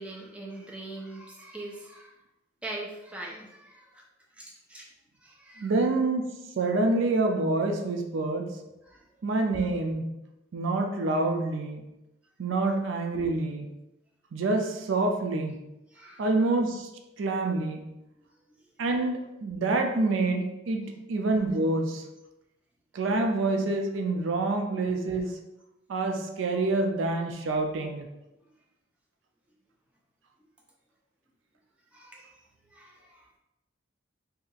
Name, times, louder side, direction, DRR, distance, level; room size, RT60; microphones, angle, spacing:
voice 1, 0.0-2.2 2.6-4.0 4.3-4.9 5.2-5.7 8.9-9.0 15.9-16.3 18.2-18.9 26.5-26.6 28.4-28.5 31.9-32.3 32.7-33.3, right 2 dB, 5° right, -3 dB, 0.5 m, -43 dB
voice 2, 5.6-6.3 6.6-8.6 9.2-10.1 10.5-11.9 12.4-13.7 14.3-15.6 16.2-16.9 17.2-17.9 18.8-22.0 22.9-25.4 25.9-28.1, right 2 dB, 80° right, 4 dB, 0.4 m, -27 dB
2.7 x 2.4 x 3.9 m, 0.93 s
head